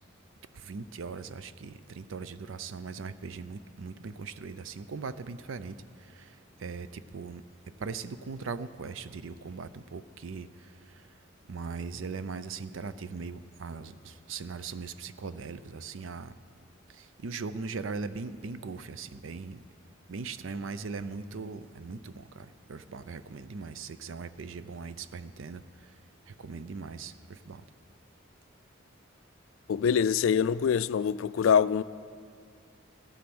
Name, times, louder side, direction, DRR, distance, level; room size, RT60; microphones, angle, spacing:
voice 1, 0.5-7.4 7.8-11.1 11.5-16.3 16.9-19.6 20.1-26.0 26.3-27.6, right 4 dB, 80° right, 0.5 m, -40 dB
voice 2, 29.7-31.8, left 7 dB, 80° left, 0.3 m, -24 dB
14.0 x 11.5 x 6.1 m
head